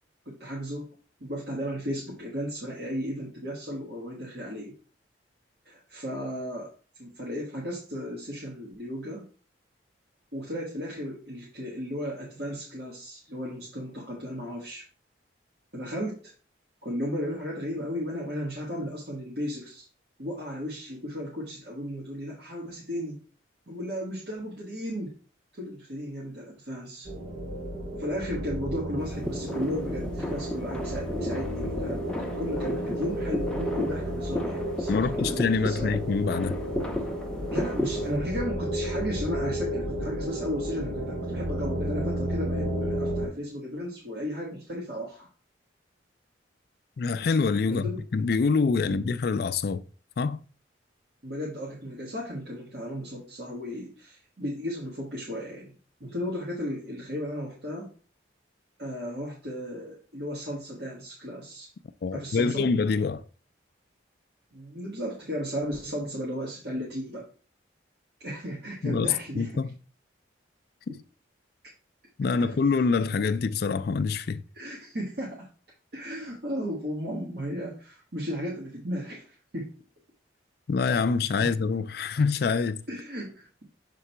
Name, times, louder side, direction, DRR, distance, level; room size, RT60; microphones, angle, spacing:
voice 1, 0.3-0.9 1.2-4.7 5.7-6.7 7.0-9.3 10.3-14.9 15.7-16.3 16.8-19.9 20.2-23.2 23.7-25.1 25.5-27.1 28.0-35.9 37.5-45.3 47.7-48.0 48.8-49.1 51.2-55.7 56.0-57.9 58.8-61.7 62.1-62.7 64.5-67.3 68.2-69.5 72.3-72.6 74.5-75.5 75.9-79.7 81.4-81.5 82.9-83.6, equal, 60° right, 1.6 m, -35 dB
sound 1, 27.1-43.3, equal, 80° right, 2.1 m, -32 dB
sound 2, 29.0-38.2, left 1 dB, 5° left, 0.6 m, -35 dB
voice 2, 34.9-36.6 47.0-49.8 50.2-50.4 62.0-63.2 68.8-69.7 70.9-71.0 72.2-74.4 80.7-82.8, left 4 dB, 55° left, 0.3 m, -25 dB
6.9 x 3.7 x 4.4 m
head